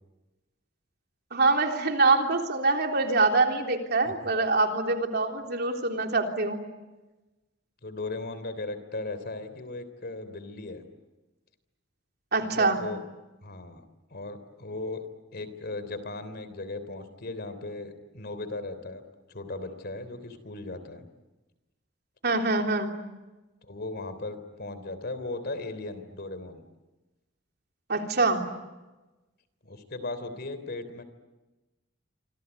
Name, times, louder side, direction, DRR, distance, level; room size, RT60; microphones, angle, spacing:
voice 1, 1.3-6.6 12.3-12.8 22.2-22.9 27.9-28.5, right 3 dB, 55° right, 3 dB, 3.5 m, -24 dB
voice 2, 7.8-10.8 12.5-13.0 13.4-13.8 14.1-15.0 15.3-19.0 19.3-21.1 23.6-26.6 29.6-31.0, left 2 dB, 55° left, 12 dB, 3.3 m, -37 dB
28.0 x 25.5 x 8.2 m, 1.1 s
head